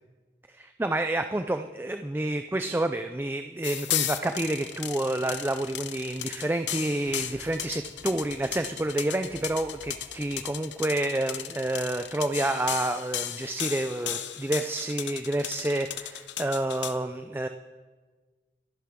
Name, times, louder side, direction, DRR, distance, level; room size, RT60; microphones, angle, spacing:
voice 1, 0.5-17.5, right 1 dB, 10° right, 7 dB, 0.3 m, -29 dB
sound 1, 3.6-16.9, left 11 dB, 90° left, 0.9 m, -34 dB
sound 2, 7.0-10.4, equal, 20° left, 3.1 m, -53 dB
24.5 x 11.5 x 3.7 m, 1.4 s
head